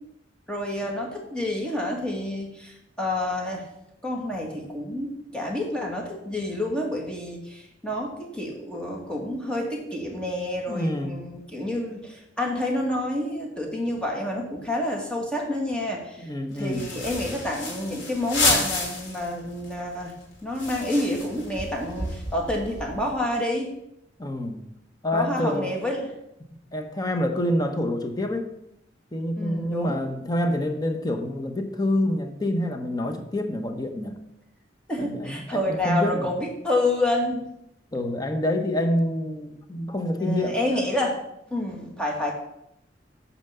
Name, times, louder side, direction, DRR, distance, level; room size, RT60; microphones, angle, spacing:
voice 1, 0.5-3.7 4.0-16.3 16.5-20.1 20.4-23.7 25.1-26.1 29.4-30.0 34.9-37.5 40.2-41.2 41.5-42.3, left 1 dB, 5° left, -1 dB, 1.9 m, -28 dB
voice 2, 10.7-11.2 16.2-16.9 24.2-24.7 25.0-25.8 26.7-28.5 29.1-34.2 35.0-36.3 37.9-40.8, left 1 dB, 20° left, 5 dB, 1.0 m, -27 dB
sound 1, 16.6-19.3 19.6-19.7 20.0-23.1, left 3 dB, 75° left, 3.2 m, -29 dB
9.2 x 4.4 x 6.9 m, 0.82 s
head